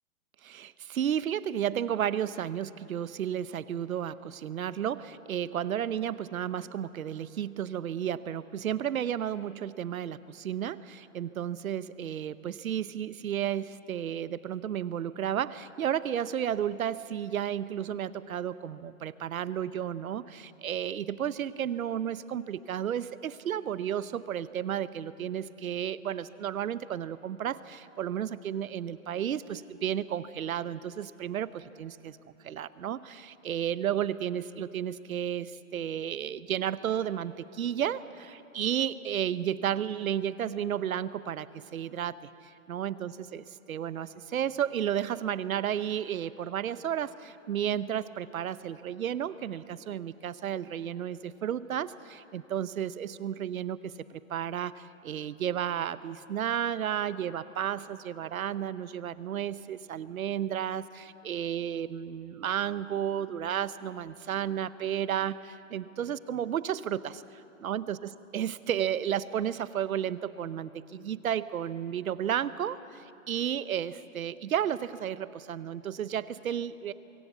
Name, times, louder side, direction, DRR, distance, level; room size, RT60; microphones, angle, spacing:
voice 1, 0.4-42.2 42.7-67.2 67.6-68.0 68.3-76.9, right 9 dB, 80° right, 16 dB, 0.9 m, -32 dB
24.0 x 15.5 x 8.1 m, 2.9 s
hypercardioid pair, 150°, 41 cm